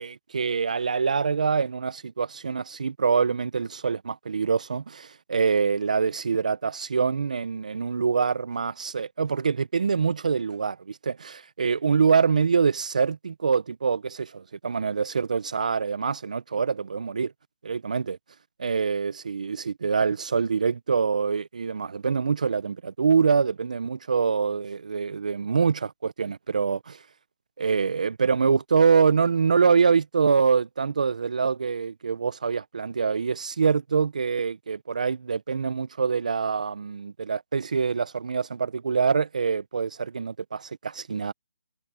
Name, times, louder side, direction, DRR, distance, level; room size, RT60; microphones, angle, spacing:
voice 1, 0.0-17.3 17.6-18.2 18.6-27.0 27.6-41.3, right 5 dB, 75° right, 0.6 m, -25 dB
hypercardioid pair, 175°, 4 cm